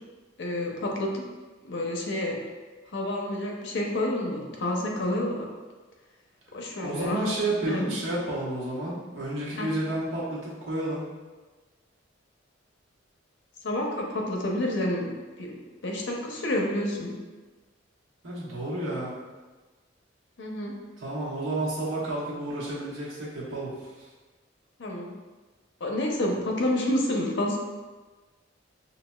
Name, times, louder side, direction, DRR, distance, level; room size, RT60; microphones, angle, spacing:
voice 1, 0.4-1.3 1.6-2.3 2.9-5.5 6.5-7.3 7.7-8.0 9.6-9.7 13.6-15.6 15.8-17.1 20.4-20.7 24.8-25.1 25.8-27.6, left 1 dB, 65° left, 0 dB, 0.7 m, -29 dB
voice 2, 6.8-11.0 18.2-19.2 21.0-23.9, right 2 dB, 80° right, -7 dB, 1.3 m, -31 dB
6.0 x 2.8 x 2.3 m, 1.3 s
head